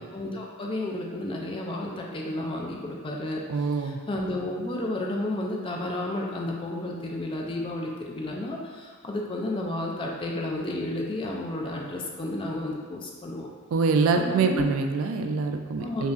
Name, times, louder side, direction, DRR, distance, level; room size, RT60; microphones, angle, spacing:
voice 1, 0.0-13.5 14.2-14.7 15.8-16.1, left 1 dB, 25° left, -1 dB, 0.3 m, -32 dB
voice 2, 3.5-4.0 13.7-16.1, right 4 dB, 65° right, 5 dB, 0.3 m, -25 dB
5.1 x 2.4 x 2.5 m, 1.5 s
head